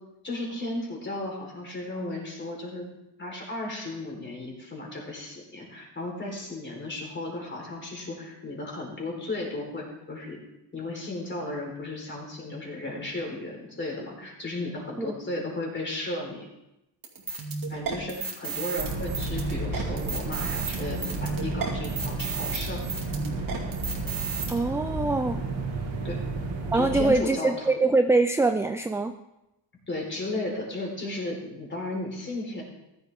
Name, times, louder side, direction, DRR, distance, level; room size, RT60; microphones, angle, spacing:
voice 1, 0.2-2.9 3.2-10.4 10.7-16.5 17.7-22.8 26.0-26.2 26.7-27.7 29.9-32.6, left 2 dB, 25° left, -1 dB, 4.2 m, -34 dB
sound 1, 17.0-24.5, right 5 dB, 45° right, 2.5 m, -33 dB
sound 2, 18.8-27.1, right 3 dB, 70° right, 2.8 m, -32 dB
voice 2, 24.5-25.4 26.7-29.2, right 3 dB, 5° right, 8 dB, 0.3 m, -23 dB
15.0 x 11.5 x 3.7 m, 0.90 s
cardioid pair, 110°, 47 cm